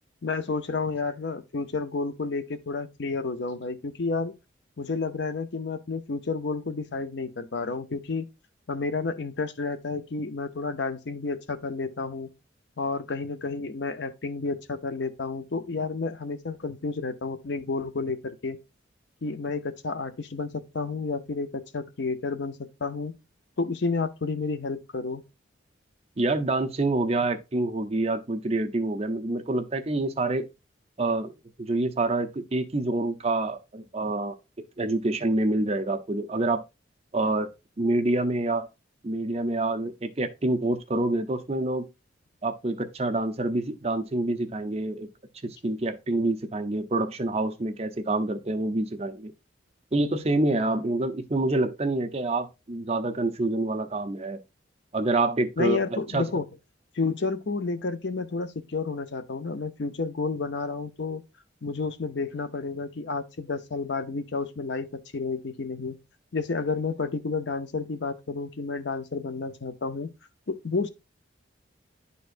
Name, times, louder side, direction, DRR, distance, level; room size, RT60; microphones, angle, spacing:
voice 1, 0.2-4.3 4.8-8.3 8.7-12.3 12.8-18.6 19.2-23.1 23.6-25.2 55.6-56.5 56.9-61.2 61.6-64.9 65.1-66.0 66.3-70.1 70.5-70.9, left 4 dB, 60° left, 0.6 m, -30 dB
voice 2, 26.2-30.5 31.0-31.3 31.6-34.4 34.8-36.6 37.1-37.5 37.8-38.7 39.0-41.9 42.4-45.1 45.4-49.3 49.9-54.4 54.9-55.8 56.1-56.2, right 2 dB, 35° right, 0.7 m, -27 dB
10.5 x 4.2 x 2.5 m
head